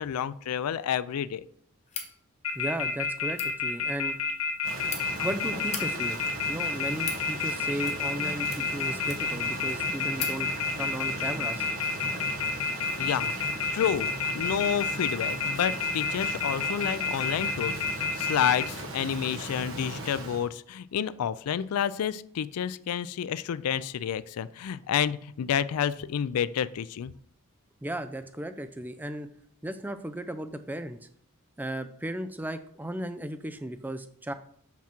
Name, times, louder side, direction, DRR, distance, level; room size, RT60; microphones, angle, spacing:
voice 1, 0.0-1.4 13.0-13.3 13.7-27.1, left 8 dB, 85° left, 17 dB, 0.4 m, -29 dB
sound 1, 1.9-2.1 3.2-3.5 4.5-5.0 5.6-5.8 6.6-7.2 7.8-8.2 8.5-9.4 9.8-9.9 10.1-10.4, left 6 dB, 30° left, 1.1 m, -37 dB
sound 2, 2.4-18.6, left 5 dB, 70° left, 1.0 m, -29 dB
voice 2, 2.6-4.2 5.2-6.2 6.5-10.5 10.8-11.6 27.8-29.3 29.6-31.0 31.6-34.3, right 1 dB, 10° right, 10 dB, 0.4 m, -35 dB
Rain, 4.6-20.5, right 1 dB, 60° right, 1.1 m, -38 dB
5.9 x 5.9 x 4.3 m, 0.64 s
head